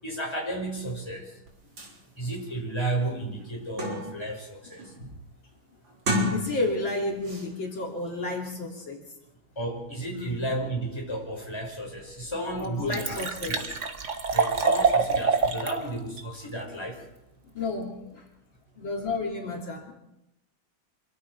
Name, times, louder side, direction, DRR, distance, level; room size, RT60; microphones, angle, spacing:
voice 1, 0.0-1.3 2.2-4.9 9.6-13.2 13.5-13.6 14.3-17.0, right 1 dB, 10° left, -1 dB, 5.5 m, -33 dB
sound 1, 1.5-1.6 1.8-1.9 2.5-2.6 3.0-4.3 4.7-5.1 5.9-6.9 7.2-7.5, left 1 dB, 70° right, 4.5 m, -31 dB
voice 2, 6.3-9.0 10.1-10.4 12.6-13.7 17.4-18.3 18.8-19.9, left 2 dB, 70° left, -1 dB, 4.0 m, -32 dB
Liquid, 11.7-11.8 12.3-12.4 12.6-15.8 16.2-16.3, right 4 dB, 40° right, 1.6 m, -26 dB
26.5 x 23.0 x 4.8 m, 0.88 s
omnidirectional pair, 2.2 m